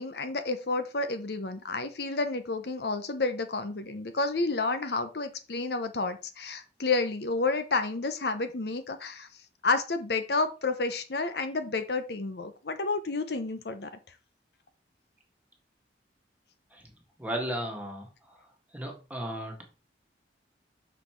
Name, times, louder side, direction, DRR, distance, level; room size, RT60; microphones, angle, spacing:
voice 1, 0.0-9.3 9.6-13.9, left 3 dB, 60° left, 9 dB, 0.8 m, -30 dB
voice 2, 17.2-18.1 18.7-19.6, right 1 dB, 10° right, 1 dB, 1.7 m, -34 dB
6.1 x 5.7 x 4.5 m, 0.33 s
head